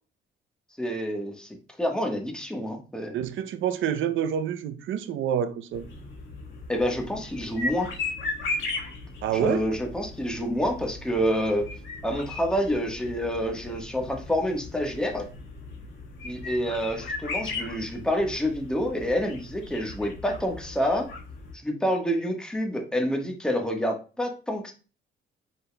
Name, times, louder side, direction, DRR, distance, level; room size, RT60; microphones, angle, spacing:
voice 1, 0.8-3.2 6.7-7.9 9.3-11.7 12.0-15.3 16.2-21.1 21.6-24.7, equal, 5° left, 1.3 m, -28 dB
voice 2, 3.1-5.8 9.2-9.7, right 9 dB, 75° right, 0.6 m, -27 dB
sound 1, 5.7-21.5, left 3 dB, 75° left, 1.5 m, -37 dB
5.2 x 4.4 x 2.2 m
cardioid pair, 90°, 20 cm